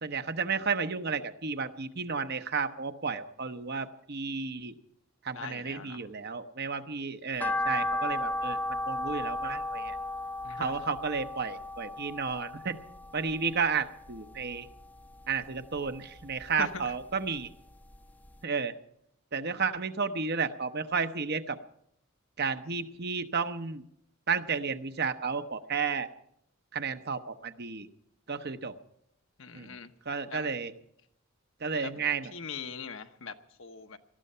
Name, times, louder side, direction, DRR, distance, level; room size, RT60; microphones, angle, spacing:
voice 1, 0.0-4.7 5.2-10.0 10.6-12.8 13.1-14.7 15.3-17.5 18.4-18.7 19.3-21.6 22.4-23.8 24.3-26.1 26.7-27.9 28.3-28.7 29.5-29.8 30.1-30.7 31.6-32.3, right 5 dB, 50° right, 9 dB, 0.9 m, -32 dB
voice 2, 5.3-6.0 10.4-10.8 16.6-16.9 29.4-29.9 30.3-30.5 31.7-32.0 32.3-34.0, left 5 dB, 65° left, 7 dB, 1.0 m, -41 dB
sound 1, 7.4-13.7 14.1-15.2 15.6-17.0 17.4-17.5 17.9-18.0 18.3-18.4, left 1 dB, 10° left, 0.6 m, -34 dB
19.0 x 13.0 x 5.6 m, 0.74 s
head